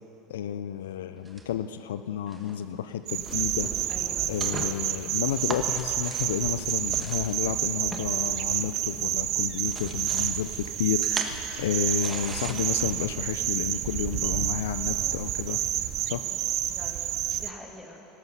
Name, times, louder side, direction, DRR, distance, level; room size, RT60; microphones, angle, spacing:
voice 1, 0.3-3.9 4.3-15.6 16.0-16.2, left 9 dB, 90° left, 11 dB, 0.4 m, -31 dB
sound 1, 1.2-1.8 2.3-2.6 3.1-9.2 9.4-13.1, right 2 dB, 15° right, 1.2 m, -40 dB
sound 2, 3.1-17.5, right 12 dB, 55° right, 0.5 m, -29 dB
voice 2, 3.9-4.7 16.2-16.4 16.7-18.1, left 1 dB, 10° left, 1 dB, 2.1 m, -46 dB
sound 3, 5.8-6.0 6.4-6.6 6.9-7.8 8.0-9.9 10.1-10.4 10.7-10.9 11.3-11.5 11.8-13.5, right 9 dB, 80° right, 1.1 m, -44 dB
13.5 x 12.0 x 5.5 m, 2.9 s
supercardioid pair, 100°, 0 cm